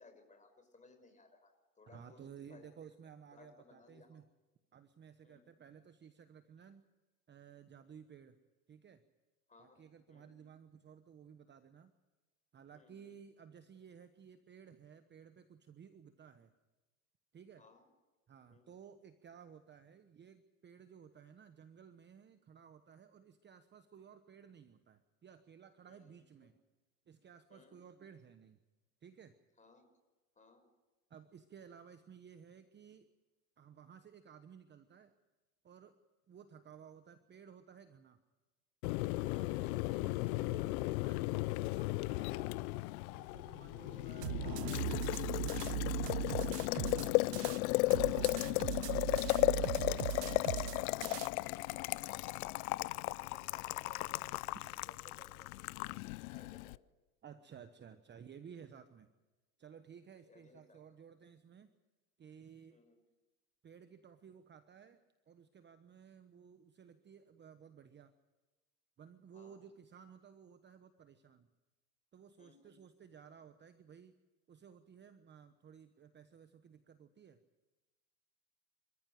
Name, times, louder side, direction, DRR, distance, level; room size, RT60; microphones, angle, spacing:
voice 1, 0.0-2.2 2.5-2.7 3.3-4.2 5.2-5.5 9.5-10.3 12.7-13.1 17.6-17.8 18.5-18.7 25.8-26.5 27.5-27.8 29.6-29.8 30.4-30.6 39.3-39.6 43.9-44.1 46.0-46.9 49.2-55.9 56.3-56.8 60.3-60.8 62.7-63.0 69.3-69.6 72.4-72.7, left 3 dB, 15° left, 7 dB, 5.6 m, -62 dB
voice 2, 1.9-4.3 4.7-6.8 7.3-8.4 8.7-9.0 9.6-11.9 12.5-16.5 17.3-17.6 18.3-26.5 27.1-28.6 29.0-29.4 31.1-33.1 33.6-35.1 35.6-35.9 36.3-38.2 39.0-42.8 43.2-45.2 46.7-47.0 47.4-47.6 48.8-49.1 57.2-59.1 59.6-61.7 62.2-62.8 63.6-68.1 69.0-71.5 72.1-74.1 74.5-77.4, right 7 dB, 25° right, 10 dB, 1.1 m, -56 dB
Boiling, 38.8-56.8, left 21 dB, 65° left, 0.7 m, -35 dB
sound 1, 44.2-47.6 47.9-51.3, right 18 dB, 80° right, 0.7 m, -39 dB
27.5 x 14.5 x 7.6 m, 1.2 s
hypercardioid pair, 110°, 46 cm